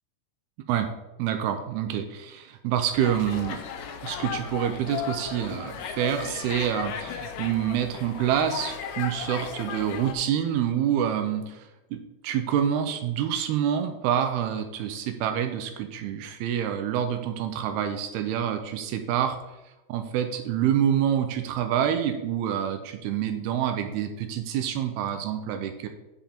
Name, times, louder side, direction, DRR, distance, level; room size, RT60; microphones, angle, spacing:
voice 1, 1.2-3.6 4.0-19.4 19.9-25.9, right 9 dB, 80° right, 7 dB, 2.6 m, -27 dB
sound 1, 2.9-10.1, left 7 dB, 80° left, 2.8 m, -36 dB
9.3 x 5.2 x 4.4 m, 0.99 s
omnidirectional pair, 4.7 m